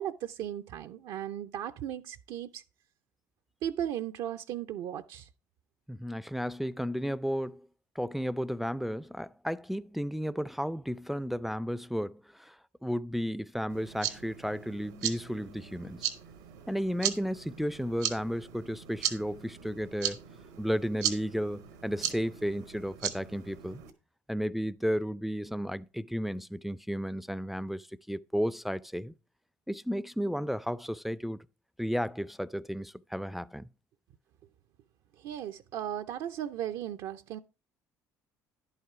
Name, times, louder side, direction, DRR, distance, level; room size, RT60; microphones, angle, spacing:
voice 1, 0.0-2.6 3.6-5.3 35.2-37.4, right 10 dB, 70° right, 0.5 m, -36 dB
voice 2, 5.9-7.6 8.0-16.1 16.7-20.2 20.6-23.8 24.3-29.1 29.7-31.5 31.8-33.7, equal, ahead, 0.4 m, -33 dB
sound 1, 13.7-23.9, right 10 dB, 90° right, 1.1 m, -38 dB
10.5 x 5.7 x 4.7 m
hypercardioid pair, 65°, 8 cm